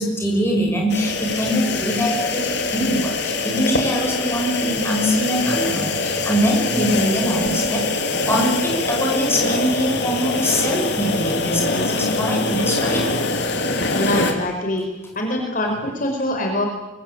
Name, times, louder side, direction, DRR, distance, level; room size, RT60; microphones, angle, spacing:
voice 1, 0.0-13.1, equal, 15° left, -1 dB, 7.0 m, -23 dB
sound 1, 0.9-14.3, left 3 dB, 60° left, 3.4 m, -23 dB
voice 2, 13.9-14.8 15.1-16.7, left 1 dB, 45° left, 3 dB, 4.7 m, -24 dB
24.5 x 24.0 x 8.8 m, 1.0 s
head